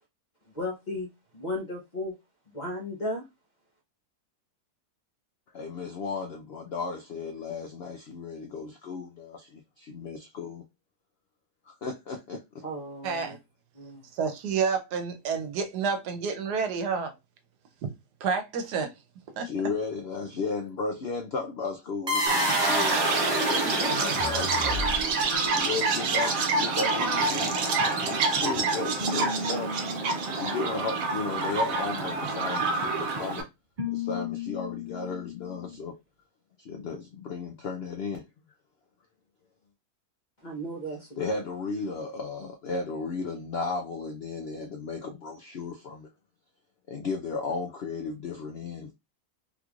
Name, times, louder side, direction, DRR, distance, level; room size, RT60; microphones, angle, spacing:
voice 1, 0.5-1.1 1.3-2.1 2.5-3.2 12.6-13.4 13.7-14.0 40.4-41.4, left 1 dB, 40° left, 0.7 m, -35 dB
voice 2, 5.5-10.6 11.7-12.4 19.4-24.8 25.5-29.7 30.3-33.5 33.9-35.9 36.6-38.2 41.2-46.1 46.9-48.9, left 4 dB, 75° left, 0.5 m, -34 dB
voice 3, 13.0-13.4 14.1-17.1 17.8-17.9 18.2-18.9 19.4-19.5, right 5 dB, 85° right, 1.3 m, -29 dB
sound 1, 22.1-25.2, right 1 dB, 20° right, 0.8 m, -27 dB
Chirp tweet, 22.3-33.4, right 3 dB, 65° right, 1.1 m, -27 dB
sound 2, 27.2-28.6 29.0-31.5 32.0-33.4 33.8-35.8, left 3 dB, 40° right, 1.7 m, -37 dB
3.7 x 3.0 x 2.4 m
omnidirectional pair, 1.7 m